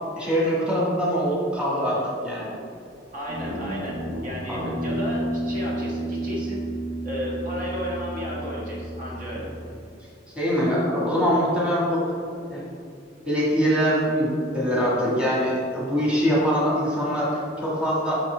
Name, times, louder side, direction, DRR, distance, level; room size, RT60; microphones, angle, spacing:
voice 1, 0.2-2.5 4.5-4.7 10.3-12.1 12.5-12.6 13.2-17.3 17.6-18.2, equal, 5° right, -7 dB, 1.5 m, -23 dB
voice 2, 3.1-6.7 7.0-9.5, equal, 50° right, -5 dB, 1.4 m, -33 dB
Guitar, 3.3-9.8, right 1 dB, 65° right, 1.2 m, -31 dB
6.6 x 5.8 x 3.3 m, 2.5 s
head